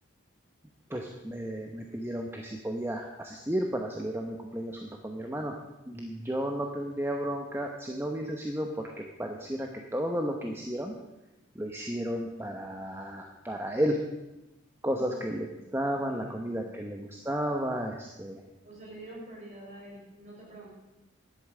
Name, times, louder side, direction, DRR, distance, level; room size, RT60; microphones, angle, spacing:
voice 1, 0.9-5.6 5.9-10.9 11.5-14.0 14.8-15.5 15.7-18.4, equal, 10° right, 2 dB, 0.8 m, -33 dB
voice 2, 14.9-16.6 18.6-20.7, right 1 dB, 35° right, -4 dB, 5.4 m, -48 dB
11.0 x 8.5 x 7.5 m, 1.0 s
head